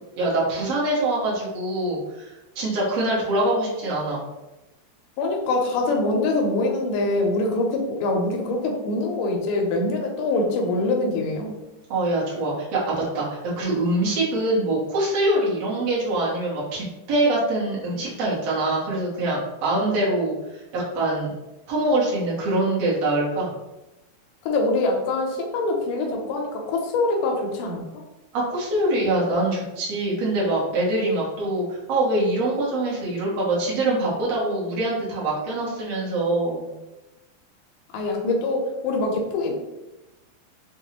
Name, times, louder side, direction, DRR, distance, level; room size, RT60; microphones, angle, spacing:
voice 1, 0.2-4.2 11.9-13.3 13.6-21.3 21.7-23.5 28.3-36.6, right 2 dB, 65° right, -6 dB, 1.6 m, -24 dB
voice 2, 5.2-11.6 24.5-27.8 37.9-39.5, left 2 dB, 85° left, 0 dB, 1.9 m, -24 dB
6.0 x 2.3 x 2.9 m, 1.0 s
omnidirectional pair, 4.5 m